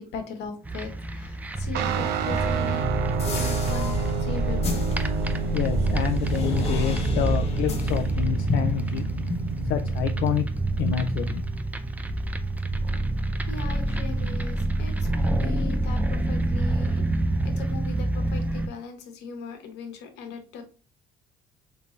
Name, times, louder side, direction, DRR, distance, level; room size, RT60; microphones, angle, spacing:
voice 1, 0.0-2.9 3.3-4.9 13.4-17.0 17.5-20.6, left 5 dB, 85° left, 1.1 m, -39 dB
sound 1, 0.6-18.7, right 2 dB, 10° right, 0.4 m, -27 dB
Guitar, 1.7-11.4, right 7 dB, 80° right, 0.5 m, -31 dB
sound 2, 1.8-10.4 10.7-11.8, left 4 dB, 35° left, 0.8 m, -36 dB
voice 2, 5.5-9.0 9.7-10.4 10.8-11.4, left 11 dB, 70° left, 0.4 m, -28 dB
3.7 x 3.3 x 3.1 m
cardioid pair, 110°, 17 cm